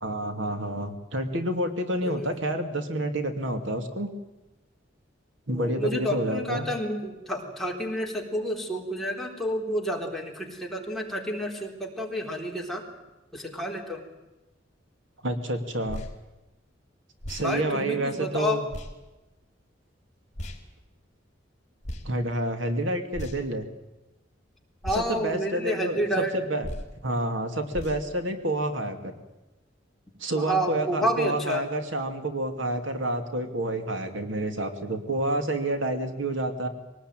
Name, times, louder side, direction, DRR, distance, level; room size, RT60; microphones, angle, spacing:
voice 1, 0.0-4.1 5.5-6.7 15.2-16.0 17.3-18.6 22.0-23.7 24.9-26.7 27.0-29.2 30.2-36.7, right 1 dB, 85° right, 6 dB, 2.7 m, -29 dB
voice 2, 2.0-2.4 5.5-12.8 13.3-14.0 17.4-18.6 24.8-26.4 30.3-31.6, equal, ahead, -1 dB, 3.8 m, -30 dB
sound 1, 15.8-16.1 17.2-17.5 18.7-18.9 20.3-20.6 21.8-22.1 23.1-23.5 24.8-25.1 26.6-26.9 27.7-28.0, equal, 40° left, 3.8 m, -36 dB
23.5 x 19.0 x 9.2 m, 1.0 s
head